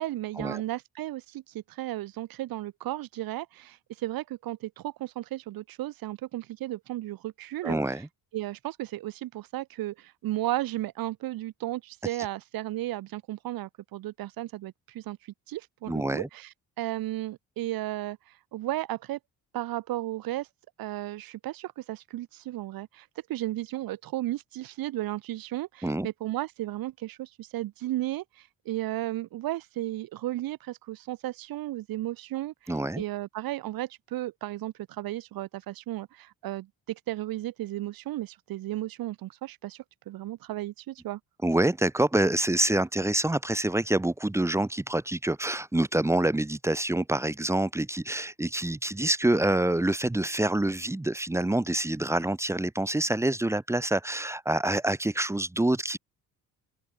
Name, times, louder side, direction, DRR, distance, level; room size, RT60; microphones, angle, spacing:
voice 1, 0.0-7.8 8.3-15.2 15.5-19.2 19.5-20.5 20.8-41.2, right 15 dB, 80° right, 5.9 m, -34 dB
voice 2, 7.6-8.1 15.9-16.3 25.8-26.1 32.7-33.0 41.4-56.0, right 1 dB, 10° right, 2.5 m, -26 dB
open air
cardioid pair, 145°, 34 cm